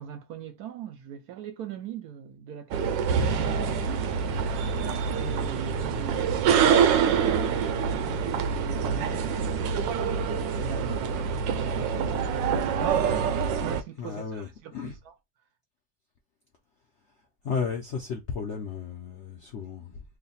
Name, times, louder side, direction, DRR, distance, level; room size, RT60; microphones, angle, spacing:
voice 1, 0.0-4.3 5.2-10.1 10.6-13.1 13.4-15.1, right 8 dB, 70° right, 1.0 m, -41 dB
sound 1, 2.7-13.8, right 6 dB, 85° right, 1.3 m, -26 dB
voice 2, 13.9-15.0 17.1-17.2 17.4-20.0, left 5 dB, 65° left, 0.7 m, -34 dB
3.1 x 2.2 x 4.0 m
omnidirectional pair, 1.9 m